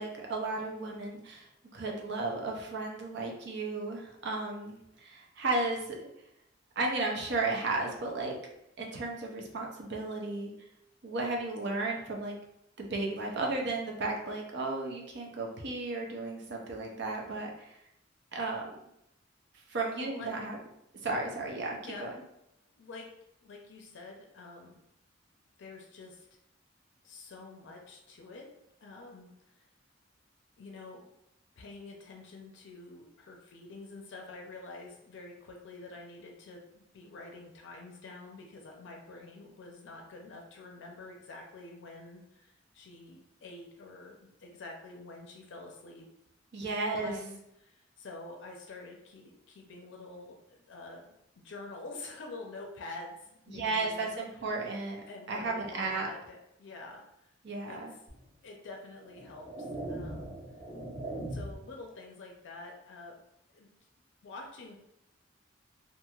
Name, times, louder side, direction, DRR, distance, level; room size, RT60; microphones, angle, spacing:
voice 1, 0.0-1.5 1.7-6.0 6.8-8.4 8.8-10.5 11.0-12.4 12.8-17.8 18.3-18.7 19.7-20.6 21.0-22.1 46.5-47.2 53.5-56.1 57.4-57.9, right 3 dB, 65° right, 0 dB, 0.6 m, -34 dB
voice 2, 20.0-20.3 21.7-22.1 22.8-23.1 23.4-24.8 25.6-26.3 27.0-28.5 28.8-29.7 30.6-31.1 31.6-46.1 46.6-54.2 55.1-57.3 57.7-57.8 58.4-60.4 61.3-63.2 63.5-63.7 64.2-64.8, left 3 dB, 65° left, 1 dB, 0.5 m, -47 dB
sound 1, 58.1-58.2 59.0-61.7, right 1 dB, 15° right, 1.2 m, -40 dB
3.0 x 2.4 x 2.3 m, 0.80 s
head